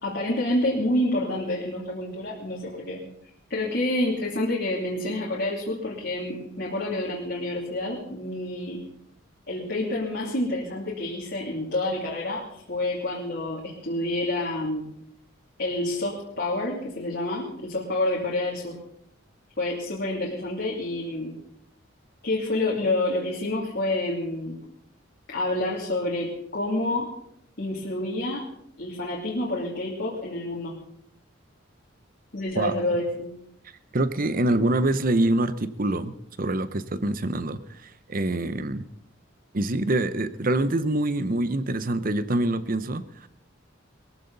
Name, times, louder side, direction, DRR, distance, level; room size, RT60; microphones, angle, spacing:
voice 1, 0.0-3.0 3.5-8.8 9.5-14.9 15.6-18.8 19.6-21.4 22.2-24.6 25.3-27.1 27.6-28.5 28.8-30.8 32.3-33.3, left 1 dB, 50° left, -5 dB, 3.0 m, -28 dB
voice 2, 33.9-38.8 39.5-43.3, right 2 dB, 40° right, 14 dB, 0.8 m, -25 dB
21.5 x 15.0 x 4.1 m, 0.73 s
head